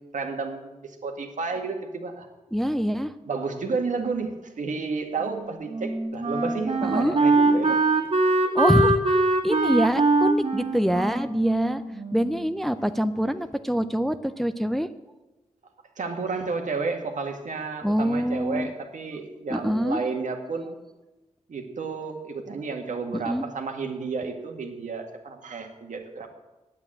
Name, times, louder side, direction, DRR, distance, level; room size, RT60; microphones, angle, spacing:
voice 1, 0.1-2.3 3.2-7.8 16.0-20.8 21.5-26.3, right 4 dB, 70° right, 4 dB, 1.7 m, -31 dB
voice 2, 2.5-3.1 6.8-7.2 8.5-11.8 12.1-14.9 17.8-18.7 19.5-20.0 23.1-23.4, equal, ahead, 11 dB, 0.5 m, -25 dB
Wind instrument woodwind instrument, 5.2-12.5, right 2 dB, 50° right, 2.0 m, -23 dB
8.7 x 8.5 x 8.8 m, 1.1 s
wide cardioid pair, 95°, 13 cm